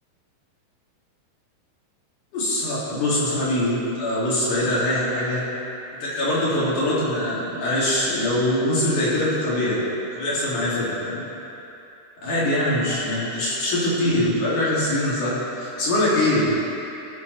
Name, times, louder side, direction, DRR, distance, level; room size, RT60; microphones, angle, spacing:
voice 1, 2.3-5.4 6.0-9.8 10.1-11.2 12.2-16.5, left 1 dB, 50° left, -9 dB, 3.1 m, -23 dB
17.0 x 7.5 x 3.1 m, 2.9 s
omnidirectional pair, 5.5 m